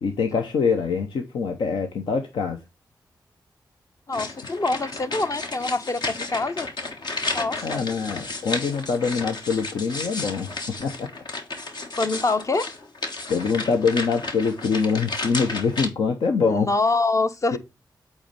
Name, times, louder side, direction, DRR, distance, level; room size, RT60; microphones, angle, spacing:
voice 1, 0.0-2.6 7.6-10.5 10.8-11.1 13.3-16.7 17.5-17.6, left 5 dB, 85° left, 0.7 m, -24 dB
sound 1, 4.1-15.9, left 3 dB, 65° left, 1.4 m, -33 dB
voice 2, 4.1-6.7 7.3-7.9 12.0-12.7 16.4-17.6, left 3 dB, 40° left, 0.8 m, -25 dB
8.3 x 3.2 x 5.2 m
supercardioid pair, 40°, 8 cm